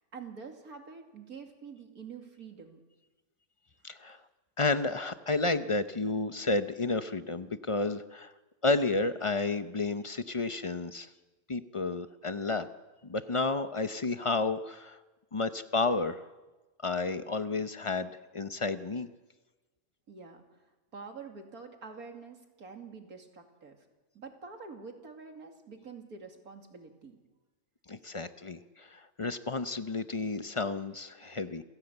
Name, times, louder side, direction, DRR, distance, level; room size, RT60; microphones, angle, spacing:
voice 1, 0.0-2.8 20.1-20.4 20.9-23.8 24.1-27.2, right 5 dB, 85° right, 4 dB, 2.9 m, -46 dB
voice 2, 3.8-4.2 4.6-8.3 8.6-11.1 11.5-12.7 13.0-15.0 15.3-16.2 16.8-19.1 27.9-31.6, left 3 dB, 35° left, 11 dB, 0.5 m, -31 dB
28.5 x 15.5 x 8.0 m, 1.2 s
omnidirectional pair, 1.5 m